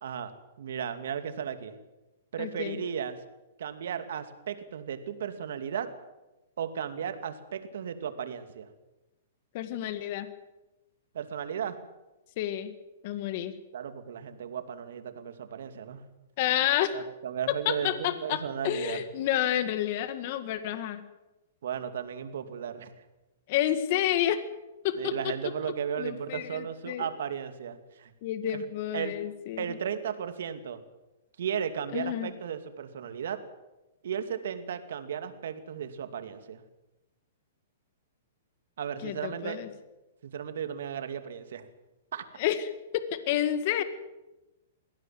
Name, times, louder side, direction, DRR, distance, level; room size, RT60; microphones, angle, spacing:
voice 1, 0.0-1.8 2.3-3.2 3.6-5.9 6.6-8.7 11.1-11.8 13.7-16.0 16.9-19.0 21.6-22.9 24.9-28.1 28.5-28.7 28.9-29.1 29.6-30.8 31.4-33.4 34.0-36.6 38.8-39.8 40.2-41.7 42.1-42.2, right 8 dB, 70° right, 9 dB, 2.5 m, -35 dB
voice 2, 2.4-2.8 9.5-10.3 12.4-12.7 13.0-13.5 16.4-17.0 17.7-21.0 23.5-24.4 24.8-25.1 26.0-27.1 28.2-29.7 31.9-32.3 39.0-39.7 42.4-42.6 42.9-43.8, left 12 dB, 50° left, 11 dB, 1.9 m, -29 dB
22.0 x 17.0 x 7.7 m, 1.0 s
hypercardioid pair, 140°, 0 cm